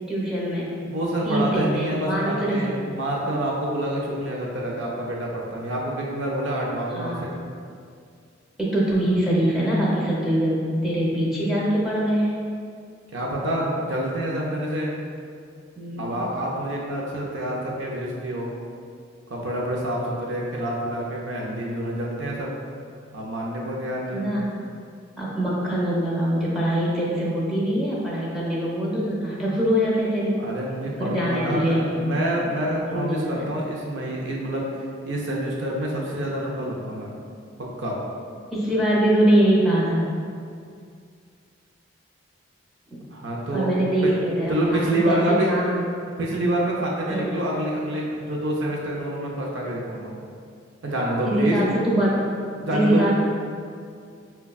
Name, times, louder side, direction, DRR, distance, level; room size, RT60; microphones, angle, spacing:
voice 1, 0.1-0.7 1.2-2.7 7.0-7.2 8.6-12.4 15.8-16.2 24.1-24.5 25.2-30.3 31.0-31.8 32.7-33.4 38.5-40.1 42.9-43.0 43.5-45.7 47.1-47.3 51.3-52.2 52.6-53.1, right 1 dB, ahead, -7 dB, 0.7 m, -23 dB
voice 2, 0.8-7.3 13.1-15.0 16.0-18.5 19.3-22.5 23.1-24.3 30.4-34.7 35.1-37.1 37.6-37.9 43.1-43.7 44.0-44.1 44.5-45.5 46.2-50.1 50.8-51.7 52.6-53.1, right 1 dB, 65° right, -3 dB, 0.5 m, -27 dB
5.6 x 2.2 x 2.3 m, 2.3 s
head